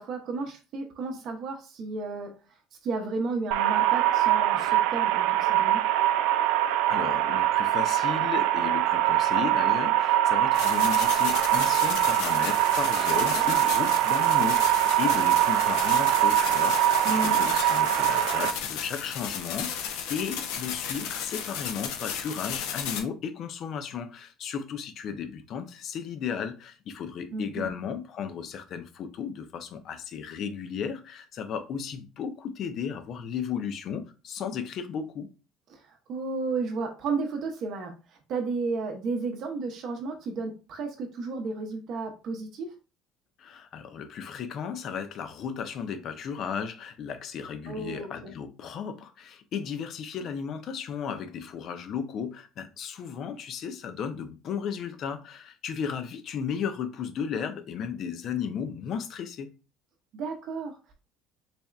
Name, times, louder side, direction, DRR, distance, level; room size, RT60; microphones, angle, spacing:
voice 1, 0.0-2.3 2.8-5.8 13.1-13.4 17.0-17.5 27.3-27.7 35.7-42.7 47.7-48.3 60.1-60.8, right 3 dB, 40° right, 0.7 m, -33 dB
sound 1, 3.5-18.5, right 13 dB, 85° right, 0.3 m, -23 dB
voice 2, 6.6-35.3 43.4-59.5, left 7 dB, 35° left, 0.5 m, -35 dB
sound 2, 10.5-23.0, left 8 dB, 90° left, 0.7 m, -34 dB
4.1 x 3.4 x 2.4 m
cardioid pair, 180°, 0 cm